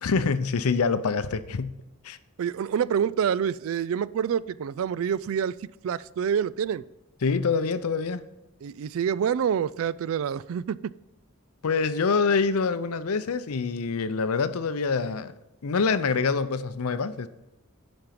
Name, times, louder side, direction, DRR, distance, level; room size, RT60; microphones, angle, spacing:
voice 1, 0.0-1.7 2.0-2.2 7.2-8.2 11.6-15.3 15.6-17.3, left 4 dB, 85° left, 0.6 m, -25 dB
voice 2, 2.4-6.8 8.6-10.9, right 8 dB, 70° right, 0.3 m, -27 dB
10.5 x 5.2 x 5.8 m
head